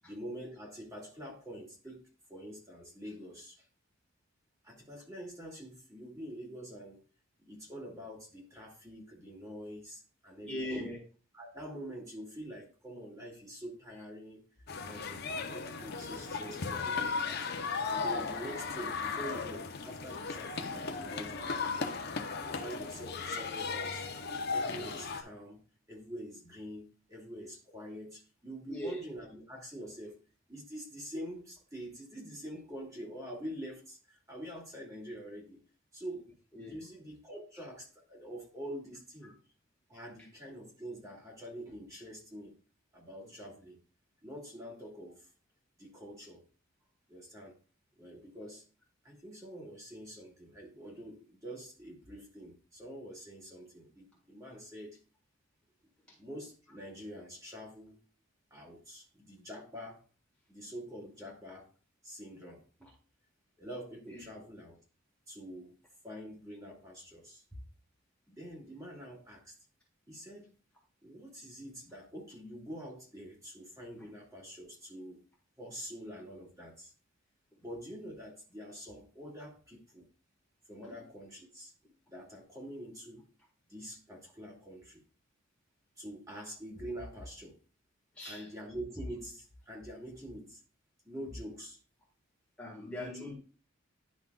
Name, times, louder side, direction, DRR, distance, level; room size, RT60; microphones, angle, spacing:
voice 1, 0.0-2.0 2.3-3.7 4.6-7.0 7.4-10.9 11.3-14.4 14.9-17.5 17.8-21.9 22.4-24.1 24.5-30.1 30.5-35.6 35.9-36.3 36.5-39.3 39.9-42.6 42.9-43.8 44.2-45.3 45.8-46.4 47.1-47.6 48.0-48.6 49.0-55.0 56.2-58.0 58.5-60.0 60.5-61.7 62.0-62.9 63.6-64.8 65.3-65.8 66.0-67.6 68.3-69.6 70.1-70.5 71.0-75.2 75.6-76.9 77.6-80.1 80.7-81.7 82.1-83.2 83.7-85.0 86.0-87.6 88.2-90.6 91.0-91.8 92.9-93.3, equal, 15° right, -2 dB, 2.5 m, -46 dB
voice 2, 10.4-11.0 28.7-29.0 36.5-36.8 43.2-43.3 64.1-64.3 74.0-74.1 80.8-81.0 88.1-88.5 92.6-93.4, left 1 dB, 5° left, -5 dB, 1.7 m, -40 dB
sound 1, 14.7-25.2, left 4 dB, 55° left, 0.8 m, -36 dB
10.5 x 5.8 x 2.4 m, 0.36 s
head